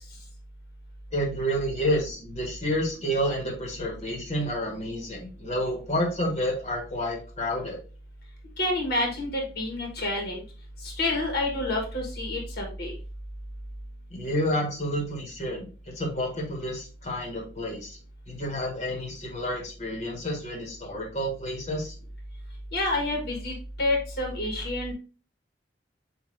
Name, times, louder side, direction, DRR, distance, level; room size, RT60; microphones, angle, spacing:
voice 1, 1.1-7.8 14.1-18.0 18.3-21.9, equal, 35° left, -1 dB, 1.4 m, -29 dB
voice 2, 8.6-10.4 10.8-12.9 22.7-24.9, left 2 dB, 55° left, 1 dB, 1.4 m, -28 dB
7.6 x 2.7 x 2.6 m, 0.36 s
head